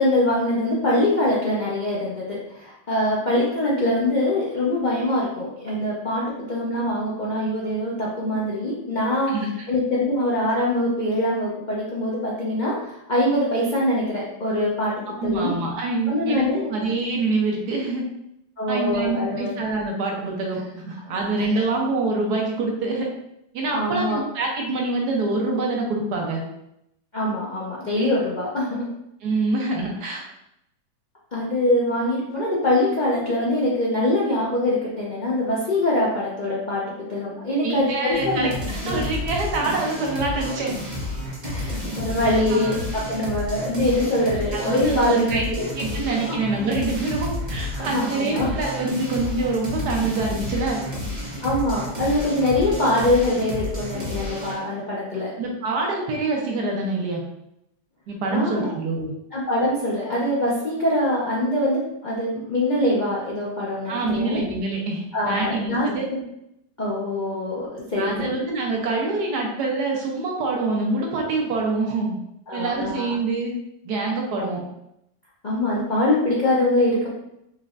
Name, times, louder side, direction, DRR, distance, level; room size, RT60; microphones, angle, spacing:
voice 1, 0.0-9.4 9.7-15.5 16.1-16.7 18.6-19.5 21.3-21.5 23.7-24.2 27.1-28.9 31.3-36.8 37.1-38.5 38.8-39.0 41.4-45.6 45.9-46.0 46.3-46.4 47.7-48.5 51.4-55.3 58.3-58.7 59.3-64.4 65.1-66.2 66.8-68.4 72.5-73.1 74.4-74.5 75.4-77.1, left 1 dB, 50° left, -7 dB, 0.5 m, -23 dB
voice 2, 15.2-18.0 18.7-23.1 23.5-26.4 29.2-30.2 37.6-40.7 42.5-42.8 44.5-45.4 45.8-50.8 55.4-57.2 58.1-59.1 63.9-66.1 68.0-72.2 72.5-73.6 73.8-74.6, right 3 dB, 75° right, 0 dB, 1.4 m, -25 dB
sound 1, 38.1-54.6, left 1 dB, 35° right, 0.8 m, -31 dB
4.4 x 3.0 x 2.5 m, 0.80 s
omnidirectional pair, 1.8 m